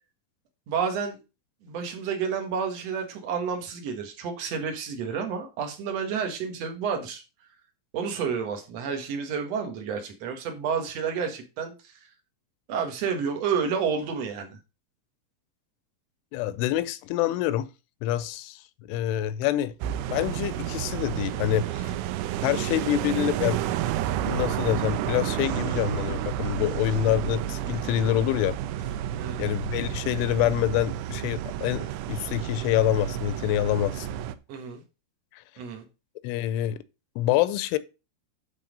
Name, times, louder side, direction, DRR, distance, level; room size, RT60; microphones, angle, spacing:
voice 1, 0.7-1.2 1.6-7.2 7.9-11.9 12.7-14.6 22.5-22.8 29.2-29.4 34.5-34.8 35.6-35.8, right 6 dB, 65° right, 1.7 m, -30 dB
voice 2, 16.3-17.7 18.0-18.6 18.9-19.7 20.1-21.9 22.4-23.6 24.2-28.6 29.4-34.1 35.3-35.4 36.2-36.8 37.2-37.8, left 12 dB, 85° left, 3.0 m, -26 dB
sound 1, 19.8-34.4, right 11 dB, 85° right, 3.1 m, -31 dB
12.0 x 4.2 x 5.2 m
omnidirectional pair, 5.5 m